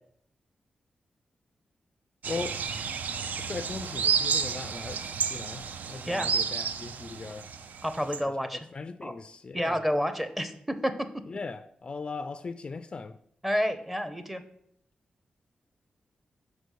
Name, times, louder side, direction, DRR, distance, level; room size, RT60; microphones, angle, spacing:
sound 1, 2.2-8.2, right 6 dB, 75° right, 0.4 m, -31 dB
voice 1, 2.3-2.6 3.4-7.5 8.7-9.8 11.3-13.2, left 4 dB, 35° left, 0.3 m, -38 dB
voice 2, 7.8-8.7 9.0-9.1 9.5-11.2 13.4-14.4, equal, 5° right, 0.6 m, -29 dB
5.2 x 4.7 x 6.3 m
wide cardioid pair, 140°, 3 cm